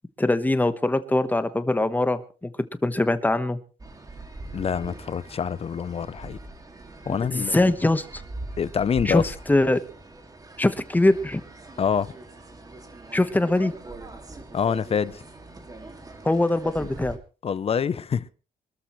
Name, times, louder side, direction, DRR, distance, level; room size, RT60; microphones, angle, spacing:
voice 1, 0.2-2.5 2.8-3.6 7.1-8.2 9.0-9.8 10.6-11.4 13.1-13.7 16.2-17.2, left 2 dB, 10° left, 1.1 m, -22 dB
sound 1, 3.8-17.2, right 2 dB, 20° right, 2.4 m, -42 dB
voice 2, 4.5-6.4 7.1-7.7 8.6-9.3 11.8-12.1 14.5-15.2 17.4-18.3, left 7 dB, 35° left, 0.6 m, -26 dB
25.5 x 13.5 x 3.2 m
cardioid pair, 135°, 17 cm